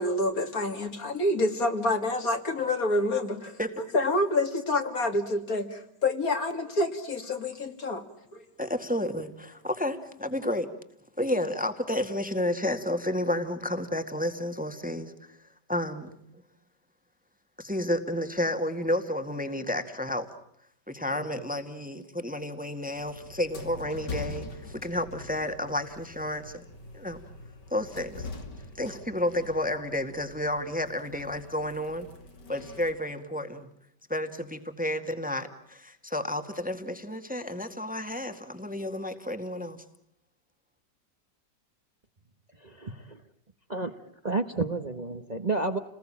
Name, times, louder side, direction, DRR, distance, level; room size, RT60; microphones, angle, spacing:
voice 1, 0.0-3.6 3.9-8.0 8.3-8.4, left 2 dB, 55° left, 2.8 m, -27 dB
voice 2, 8.6-10.7 11.2-15.4 15.7-16.1 17.6-20.3 20.9-26.6 26.9-27.2 27.7-28.3 28.8-32.1 32.5-33.7 34.1-39.8, left 1 dB, 5° right, 1.9 m, -31 dB
sound 1, 22.9-33.0, left 3 dB, 90° left, 3.7 m, -43 dB
voice 3, 42.6-43.2 43.7-43.9 44.2-45.8, right 3 dB, 25° right, 1.3 m, -30 dB
29.5 x 20.5 x 8.8 m
omnidirectional pair, 1.8 m